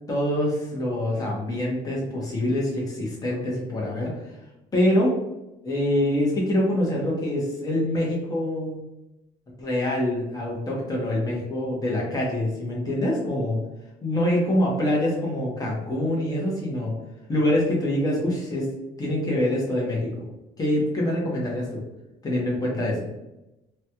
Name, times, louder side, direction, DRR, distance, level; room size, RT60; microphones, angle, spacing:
voice 1, 0.1-4.2 4.7-5.1 5.6-8.8 9.6-13.6 14.0-16.9 17.3-18.7 19.0-20.3 20.6-21.8 22.2-22.9, left 1 dB, 20° left, -3 dB, 1.0 m, -25 dB
3.0 x 2.3 x 2.9 m, 0.94 s
cardioid pair, 110°, 17 cm